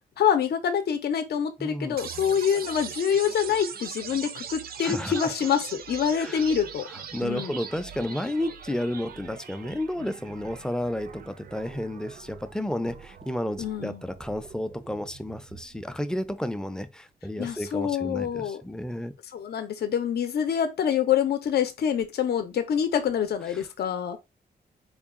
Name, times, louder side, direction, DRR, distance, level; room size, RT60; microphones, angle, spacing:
voice 1, 0.2-6.9 7.2-7.6 13.6-14.0 17.4-18.6 19.3-24.2, left 8 dB, 80° left, 0.6 m, -26 dB
voice 2, 1.6-2.0 4.8-5.3 6.2-6.4 6.9-19.1, left 1 dB, 5° left, 0.4 m, -32 dB
sound 1, 2.0-16.0, right 7 dB, 65° right, 0.5 m, -41 dB
3.8 x 2.2 x 3.5 m
wide cardioid pair, 120°, 17 cm